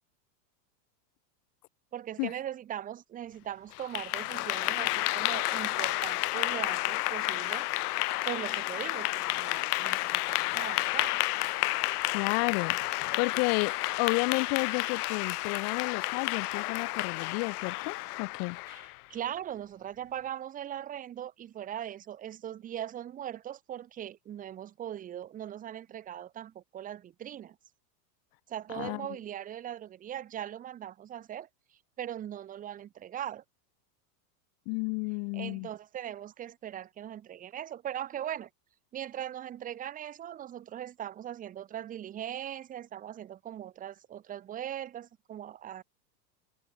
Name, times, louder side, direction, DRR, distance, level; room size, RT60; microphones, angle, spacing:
voice 1, 1.9-7.7 8.2-11.2 18.7-27.6 28.5-31.5 32.0-33.4 35.3-38.5 38.9-45.8, right 10 dB, 15° right, 1.3 m, -40 dB
Clapping / Applause, 3.7-19.0, left 20 dB, 65° left, 0.6 m, -31 dB
voice 2, 12.1-12.8 13.2-18.6 28.7-29.1 34.7-35.7, left 40 dB or more, 40° left, 3.7 m, -31 dB
supercardioid pair, 165°, 50 cm